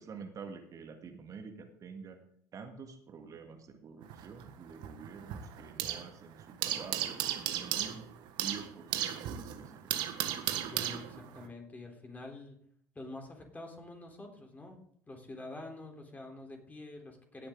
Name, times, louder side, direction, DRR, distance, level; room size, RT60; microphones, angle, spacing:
voice 1, 0.0-2.2 2.5-8.1 8.4-10.1, right 5 dB, 40° right, 4 dB, 1.9 m, -48 dB
sound 1, 4.0-6.1 6.4-11.5, right 12 dB, 60° right, 1.5 m, -35 dB
voice 2, 10.6-12.6 12.9-14.8 15.1-17.5, left 2 dB, 20° left, 2 dB, 3.8 m, -47 dB
17.0 x 8.6 x 3.9 m, 0.64 s
hypercardioid pair, 65°, 9 cm